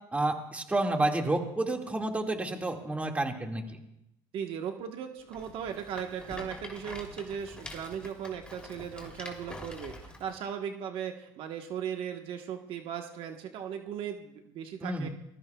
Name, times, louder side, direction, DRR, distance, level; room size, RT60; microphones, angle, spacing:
voice 1, 0.1-3.8 14.8-15.1, right 2 dB, 15° right, 2 dB, 2.0 m, -30 dB
voice 2, 4.3-15.1, right 8 dB, 60° right, 4 dB, 1.3 m, -37 dB
Rattle, 5.3-10.4, left 2 dB, 10° left, 3.1 m, -46 dB
28.5 x 20.5 x 2.4 m, 0.81 s
cardioid pair, 110°, 10 cm